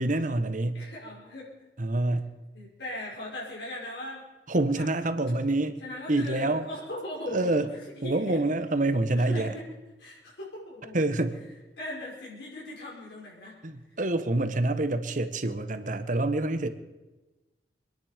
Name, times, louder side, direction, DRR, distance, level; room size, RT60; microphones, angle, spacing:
voice 1, 0.0-0.8 1.8-2.3 4.5-5.8 6.1-6.7 7.3-7.7 8.0-9.5 10.9-11.4 13.6-16.7, right 2 dB, 45° right, 10 dB, 1.1 m, -27 dB
voice 2, 0.7-1.7 2.5-4.2 4.8-4.9 5.8-7.8 8.0-8.4 9.2-9.6 10.0-11.2 11.8-13.6 15.4-15.6, left 1 dB, 75° left, -6 dB, 5.2 m, -39 dB
24.5 x 10.5 x 5.1 m, 1.1 s
head